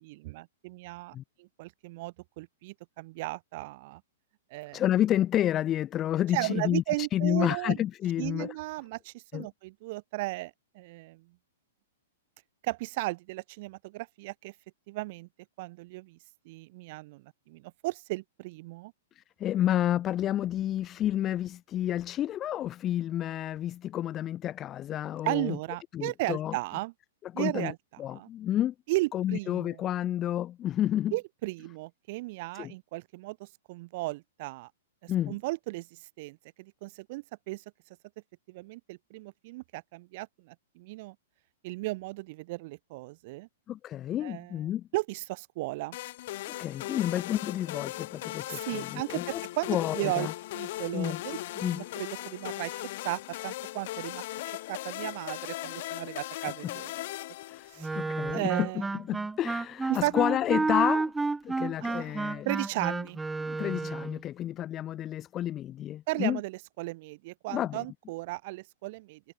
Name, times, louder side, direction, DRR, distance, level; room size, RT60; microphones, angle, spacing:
voice 1, 0.0-4.0 4.5-4.8 6.3-7.8 8.2-11.2 12.6-14.5 14.9-15.3 15.6-16.2 16.5-18.9 25.2-26.9 27.3-28.3 28.9-29.8 31.1-34.7 35.0-37.6 38.5-41.1 41.6-43.5 44.2-44.6 44.9-46.0 48.5-50.3 50.5-56.9 57.7-58.0 58.3-58.9 59.9-60.1 61.8-62.2 62.4-63.2 66.1-69.2, right 22 dB, 45° right, 0.5 m, -35 dB
voice 2, 4.7-8.5 9.3-9.5 19.2-25.6 25.9-26.6 27.2-27.7 28.0-28.7 29.1-31.1 32.5-32.7 35.1-35.4 43.7-44.9 46.6-49.4 49.7-50.3 50.9-51.2 51.6-51.8 56.6-56.7 57.5-61.1 61.4-62.5 63.4-66.4 67.5-67.8, left 12 dB, 25° left, 0.7 m, -30 dB
sound 1, 45.9-58.1, left 17 dB, 45° left, 1.6 m, -38 dB
Wind instrument woodwind instrument, 57.8-64.2, right 3 dB, 5° right, 1.1 m, -31 dB
figure-of-eight pair, 105°, 0 cm